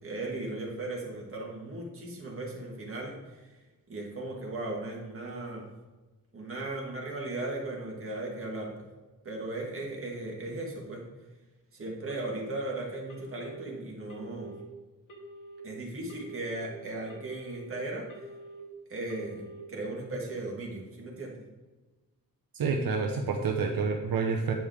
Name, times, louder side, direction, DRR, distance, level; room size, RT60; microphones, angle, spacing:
voice 1, 0.0-3.4 3.9-5.7 6.3-8.7 9.2-11.0 11.7-14.5 15.6-18.1 18.9-21.4, right 2 dB, 40° right, -2 dB, 2.0 m, -37 dB
Telephone, 12.1-12.6 13.1-13.6 14.1-14.6 15.1-15.6 16.1-16.6 17.1-17.6 18.1-18.6 19.1-19.6, equal, 60° left, 2.0 m, -47 dB
voice 2, 22.5-24.5, right 5 dB, 75° right, 2 dB, 0.9 m, -28 dB
9.0 x 5.4 x 4.9 m, 1.2 s
wide cardioid pair, 170°, 35 cm